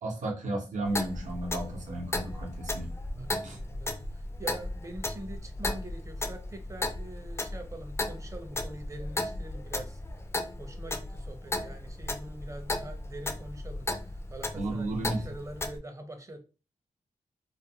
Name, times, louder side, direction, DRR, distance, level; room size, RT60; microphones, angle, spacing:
voice 1, 0.0-3.6 14.5-15.2, right 1 dB, 75° right, 0.8 m, -34 dB
Clock, 0.8-15.8, left 2 dB, 20° left, 0.3 m, -35 dB
voice 2, 3.2-10.0 10.6-16.4, right 1 dB, 25° right, 0.6 m, -44 dB
2.5 x 2.1 x 2.8 m
cardioid pair, 85°, 13 cm